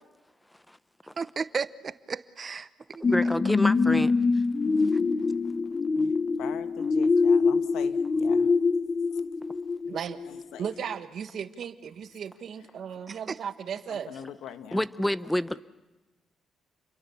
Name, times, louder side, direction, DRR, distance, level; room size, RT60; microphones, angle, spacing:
voice 1, 1.2-3.0 13.1-13.4, right 5 dB, 40° right, 0.8 m, -34 dB
sound 1, 3.0-10.4 10.9-11.0, left 4 dB, 35° left, 1.0 m, -24 dB
voice 2, 3.0-4.1 4.8-4.9 6.0-6.1 14.7-15.6, left 1 dB, 5° left, 0.8 m, -28 dB
voice 3, 6.4-8.5 9.1-9.2 10.3-10.7 13.9-14.8, left 9 dB, 85° left, 1.2 m, -42 dB
voice 4, 9.8-10.2 10.6-14.1, right 8 dB, 60° right, 1.4 m, -36 dB
30.0 x 23.0 x 7.0 m
cardioid pair, 90°, 0 cm